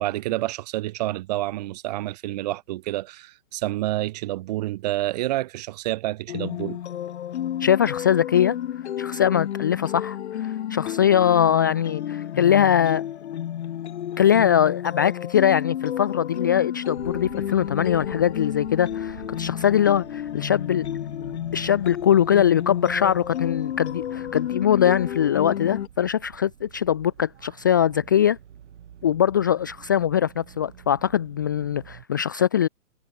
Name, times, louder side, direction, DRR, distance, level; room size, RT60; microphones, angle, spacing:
voice 1, 0.0-6.8, right 16 dB, 30° right, 1.4 m, -28 dB
sound 1, 6.3-25.9, left 11 dB, 55° left, 1.6 m, -31 dB
voice 2, 7.6-8.6 9.0-13.0 14.2-20.9 21.5-28.4 29.0-32.7, left 9 dB, 15° left, 0.5 m, -21 dB
sound 2, 16.9-32.1, right 9 dB, 60° right, 7.3 m, -46 dB
hypercardioid pair, 165°, 40 cm